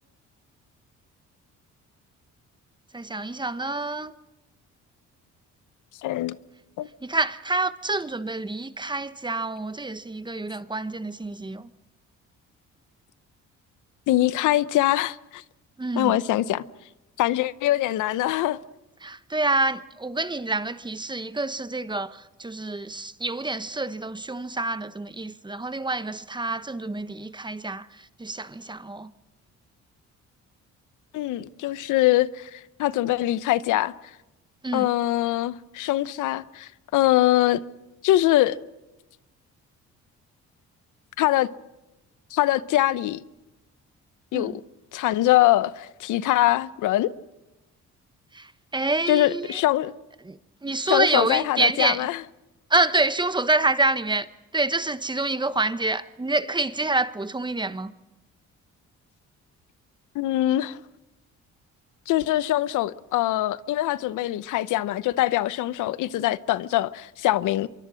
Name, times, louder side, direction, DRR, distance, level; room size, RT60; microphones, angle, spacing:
voice 1, 2.9-4.1 7.0-11.7 15.8-16.1 19.0-27.9 28.2-29.1 34.6-34.9 44.3-44.6 48.3-49.6 50.2-52.1 52.7-54.3 54.5-57.9, right 2 dB, 15° right, 1.0 m, -27 dB
voice 2, 6.0-6.4 6.8-6.9 14.1-15.4 16.0-16.6 17.2-18.6 31.1-33.9 34.7-37.6 38.0-38.6 41.2-41.5 42.3-43.2 44.3-44.6 44.9-47.1 49.1-49.9 50.8-52.2 60.1-60.8 62.1-67.7, left 15 dB, 85° left, 0.8 m, -23 dB
25.0 x 23.5 x 6.3 m
cardioid pair, 90°, 30 cm